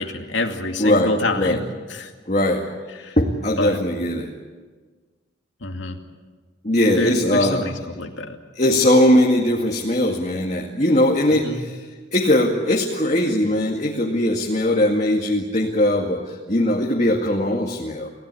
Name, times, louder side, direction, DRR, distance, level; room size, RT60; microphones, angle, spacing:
voice 1, 0.0-1.6 1.9-2.1 3.0-3.2 3.6-3.8 5.6-6.0 7.0-8.4 11.4-11.6, left 2 dB, 90° left, 4 dB, 2.4 m, -27 dB
voice 2, 0.8-1.6 2.3-2.7 3.2-4.3 6.6-7.6 8.6-11.9 12.1-18.1, left 1 dB, 40° left, 0 dB, 2.1 m, -20 dB
27.5 x 16.5 x 9.9 m, 1.4 s
head